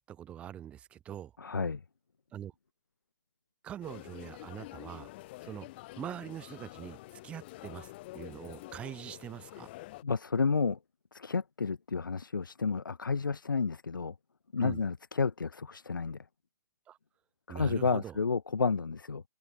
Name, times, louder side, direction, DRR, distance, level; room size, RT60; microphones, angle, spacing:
voice 1, 0.0-1.3 2.3-2.5 3.6-5.1 5.4-5.7 6.0-7.0 7.2-9.7 14.6-14.8 16.9-17.0 17.5-18.2, right 10 dB, 10° right, 0.5 m, -43 dB
voice 2, 1.4-1.8 10.0-10.8 11.1-14.1 14.5-16.2 17.5-19.2, left 5 dB, 90° left, 0.6 m, -31 dB
sound 1, 3.8-10.0, left 19 dB, 30° left, 1.4 m, -48 dB
open air
hypercardioid pair, 145°, 11 cm